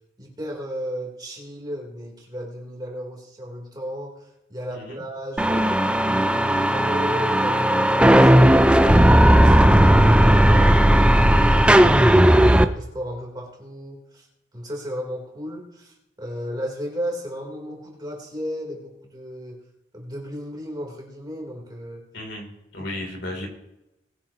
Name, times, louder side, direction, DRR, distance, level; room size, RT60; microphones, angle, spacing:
voice 1, 0.2-5.6 6.0-11.8 12.3-12.5 12.8-14.3 14.5-19.6 19.9-22.0 22.8-23.1, equal, 20° right, -1 dB, 3.4 m, -34 dB
voice 2, 4.7-5.0 12.3-12.6 22.1-23.5, left 1 dB, 65° left, 1 dB, 3.2 m, -35 dB
sound 1, 5.4-12.6, right 1 dB, 5° right, 0.4 m, -15 dB
20.0 x 10.0 x 3.0 m, 0.89 s
head